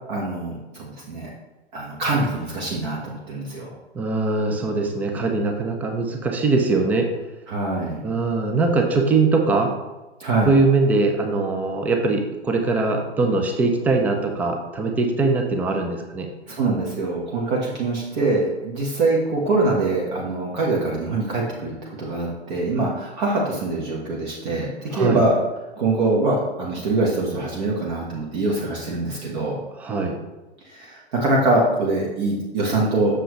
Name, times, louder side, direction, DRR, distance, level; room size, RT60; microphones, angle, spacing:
voice 1, 0.1-1.3 1.7-3.7 7.5-8.1 10.2-10.5 16.5-25.3 25.8-29.6 30.6-33.2, right 2 dB, 45° right, -3 dB, 1.4 m, -24 dB
voice 2, 3.9-7.1 8.0-9.7 10.4-16.3 24.9-25.2 29.8-30.2, right 3 dB, 5° right, 3 dB, 0.4 m, -21 dB
7.6 x 6.5 x 3.1 m, 1.1 s
figure-of-eight pair, 105°, 33 cm